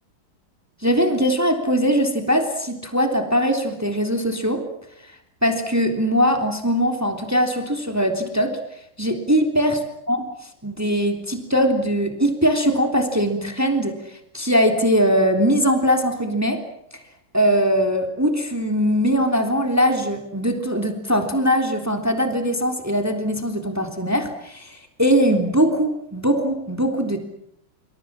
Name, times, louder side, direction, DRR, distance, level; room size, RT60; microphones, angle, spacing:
voice 1, 0.8-4.7 5.0-9.8 10.1-16.6 17.3-27.2, equal, 5° right, 5 dB, 3.3 m, -21 dB
27.0 x 26.0 x 7.6 m, 0.76 s
omnidirectional pair, 2.2 m